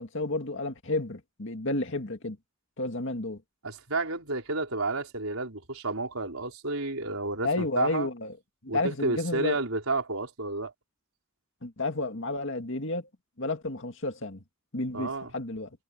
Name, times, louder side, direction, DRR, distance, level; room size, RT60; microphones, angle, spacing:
voice 1, 0.0-2.4 2.8-3.4 7.4-8.3 8.7-9.6 11.6-13.1 13.4-14.4 14.7-15.7, left 2 dB, 65° left, 2.2 m, -31 dB
voice 2, 3.6-8.1 8.7-10.7 14.9-15.3, right 3 dB, 80° right, 4.6 m, -31 dB
head